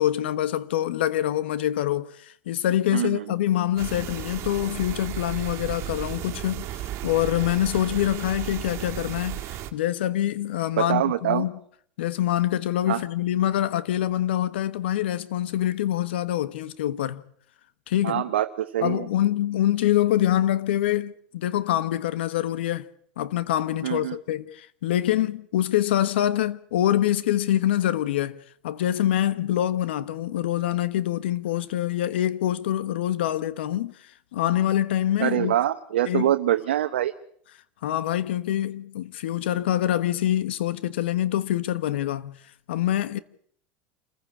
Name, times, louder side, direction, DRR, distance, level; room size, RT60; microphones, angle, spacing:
voice 1, 0.0-9.4 9.7-11.5 12.0-17.2 17.9-18.2 18.8-22.9 23.2-28.4 28.6-33.9 34.3-35.5 36.0-36.3 37.8-42.4 42.7-43.2, left 12 dB, 85° left, 1.3 m, -25 dB
voice 2, 2.9-3.2 10.8-11.4 12.9-13.0 18.0-19.1 23.8-24.2 35.2-37.1, right 12 dB, 85° right, 0.9 m, -24 dB
sound 1, 3.8-9.7, right 13 dB, 55° right, 2.3 m, -34 dB
27.5 x 15.5 x 8.5 m
hypercardioid pair, 90°, 6 cm